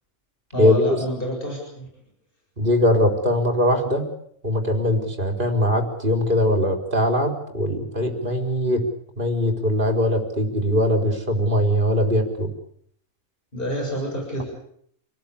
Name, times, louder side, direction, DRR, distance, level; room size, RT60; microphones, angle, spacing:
voice 1, 0.5-1.9 13.5-14.4, equal, 40° left, 0 dB, 7.8 m, -28 dB
voice 2, 2.6-4.1 4.4-8.8 9.2-12.5, left 1 dB, 40° right, 3 dB, 4.5 m, -21 dB
29.0 x 19.0 x 8.6 m, 0.69 s
omnidirectional pair, 1.4 m